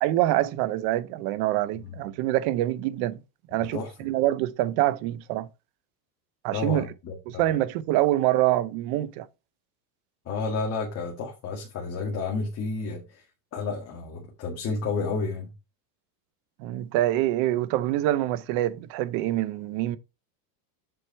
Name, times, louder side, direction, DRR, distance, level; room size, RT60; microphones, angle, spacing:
voice 1, 0.0-3.2 3.5-5.5 6.4-6.8 7.3-9.3 16.6-20.0, right 14 dB, 45° right, 0.7 m, -25 dB
voice 2, 3.6-3.9 6.5-7.6 10.3-13.3 13.5-15.5, left 4 dB, 30° left, 1.9 m, -31 dB
7.8 x 4.9 x 4.5 m
supercardioid pair, 150°, 48 cm